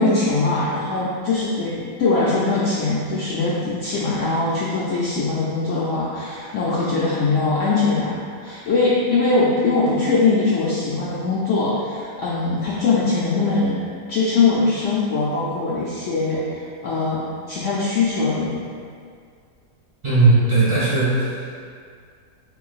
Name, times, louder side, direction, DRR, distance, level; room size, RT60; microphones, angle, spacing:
voice 1, 0.0-13.8 14.1-18.6, left 3 dB, 65° left, -6 dB, 0.8 m, -21 dB
voice 2, 20.0-21.6, right 3 dB, 20° right, -11 dB, 1.3 m, -18 dB
6.8 x 2.5 x 2.4 m, 2.2 s
omnidirectional pair, 1.7 m